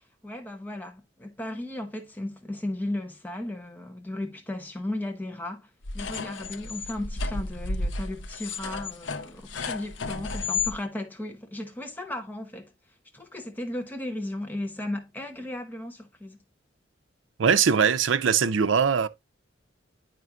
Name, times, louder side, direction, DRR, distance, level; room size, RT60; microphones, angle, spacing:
voice 1, 0.0-12.7 13.1-16.4, left 1 dB, 10° left, 0.8 m, -35 dB
sound 1, 5.8-10.7, left 4 dB, 70° left, 0.6 m, -32 dB
voice 2, 17.4-19.1, right 6 dB, 75° right, 0.5 m, -21 dB
9.3 x 5.0 x 2.3 m
head